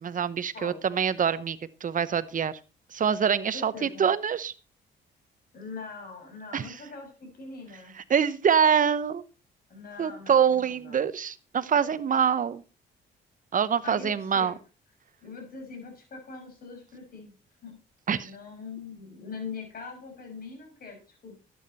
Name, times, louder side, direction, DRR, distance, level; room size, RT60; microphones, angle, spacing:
voice 1, 0.0-2.5 2.9-4.5 6.5-6.7 8.1-9.2 10.0-12.6 13.5-14.5 18.1-18.3, right 7 dB, 40° right, 15 dB, 0.9 m, -25 dB
voice 2, 3.5-4.1 5.5-8.0 9.7-11.1 13.8-14.6 15.2-17.3 17.6-17.8 18.2-21.4, left 4 dB, 50° left, 2 dB, 6.2 m, -42 dB
12.0 x 8.8 x 4.1 m, 0.32 s
cardioid pair, 90°, 20 cm